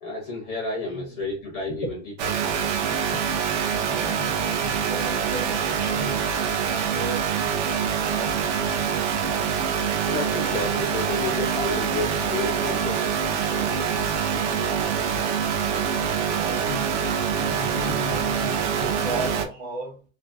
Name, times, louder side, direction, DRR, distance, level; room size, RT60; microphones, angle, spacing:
voice 1, 0.0-2.4 10.1-13.9, left 2 dB, 25° left, 0.5 m, -31 dB
voice 2, 0.8-1.2 3.7-6.3 6.6-7.3 7.7-8.4 16.2-17.0 17.4-20.0, right 1 dB, 25° right, 0.9 m, -35 dB
sound 1, 2.2-19.5, right 7 dB, 55° right, 0.6 m, -25 dB
2.5 x 2.4 x 2.3 m
supercardioid pair, 165°, 43 cm